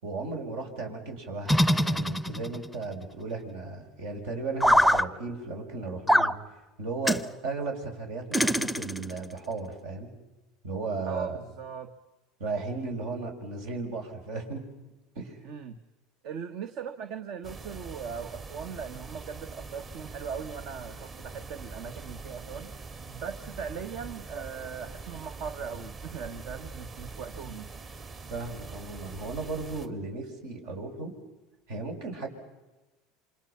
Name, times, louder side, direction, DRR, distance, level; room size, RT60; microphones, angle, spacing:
voice 1, 0.0-10.1 10.6-11.4 12.4-14.6 15.1-15.4 28.3-31.1 31.7-32.3, right 3 dB, 75° right, 3 dB, 6.0 m, -35 dB
sound 1, 1.5-2.7 4.6-5.0 6.1-6.3 7.0-7.3 8.3-9.2, equal, ahead, 0.7 m, -23 dB
voice 2, 11.1-11.9 15.4-15.8 16.2-22.7 23.1-27.7, right 6 dB, 60° right, 8 dB, 1.4 m, -39 dB
sound 2, 17.4-29.9, right 4 dB, 35° right, 2.0 m, -43 dB
28.5 x 26.5 x 5.8 m, 1.1 s
supercardioid pair, 110°, 0 cm